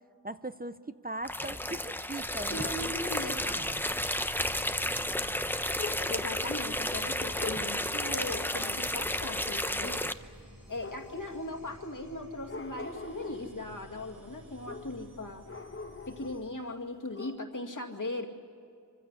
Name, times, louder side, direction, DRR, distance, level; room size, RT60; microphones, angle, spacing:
voice 1, 0.2-2.9 3.2-3.9, right 2 dB, 25° right, 11 dB, 0.6 m, -40 dB
sound 1, 1.2-10.1, left 1 dB, 5° left, 0.8 m, -32 dB
sound 2, 2.1-16.5, left 1 dB, 85° right, 5.5 m, -52 dB
voice 2, 2.5-3.6 6.1-10.1 10.7-15.5 16.1-18.3, left 2 dB, 60° left, 3 dB, 2.2 m, -38 dB
sound 3, 5.8-6.3 7.3-7.8 10.7-11.5 12.4-13.6 14.6-15.1 15.4-16.6 16.9-17.4, left 3 dB, 40° left, 1.2 m, -43 dB
25.0 x 16.0 x 9.7 m, 2.3 s
wide cardioid pair, 55°, 35 cm